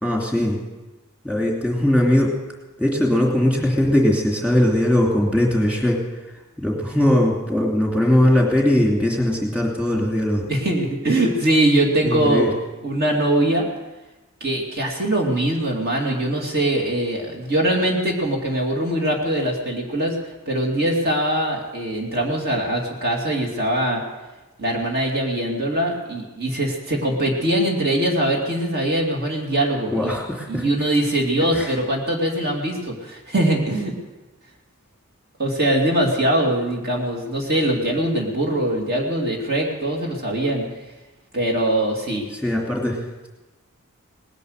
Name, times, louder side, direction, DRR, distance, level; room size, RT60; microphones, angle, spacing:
voice 1, 0.0-0.6 1.2-2.3 2.8-6.0 6.6-10.5 12.0-12.5 29.9-30.6 31.5-31.7 42.4-43.3, left 1 dB, 5° right, -1 dB, 2.7 m, -20 dB
voice 2, 10.5-12.5 12.8-13.7 14.4-20.2 20.5-24.0 24.6-30.1 30.5-33.9 35.4-40.7 41.3-42.3, right 1 dB, 45° right, 0 dB, 2.4 m, -22 dB
19.5 x 10.5 x 6.6 m, 1.1 s
head